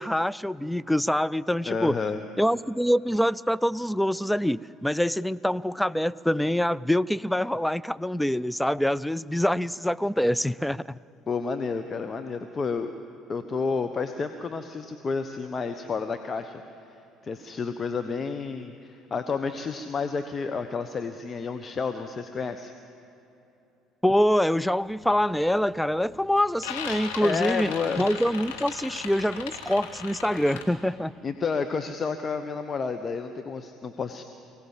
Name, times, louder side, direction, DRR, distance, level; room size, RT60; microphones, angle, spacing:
voice 1, 0.0-2.0 2.4-10.8 24.0-27.7 28.0-31.1, equal, 5° left, 18 dB, 0.4 m, -25 dB
voice 2, 1.7-2.2 11.3-12.9 13.3-16.6 17.2-22.7 27.2-28.1 31.2-34.2, left 5 dB, 35° left, 8 dB, 1.0 m, -30 dB
sound 1, 24.9-25.2 25.6-26.1 26.4-30.6, left 6 dB, 80° left, 2.0 m, -37 dB
23.5 x 17.0 x 7.3 m, 2.9 s
hypercardioid pair, 60°, 0 cm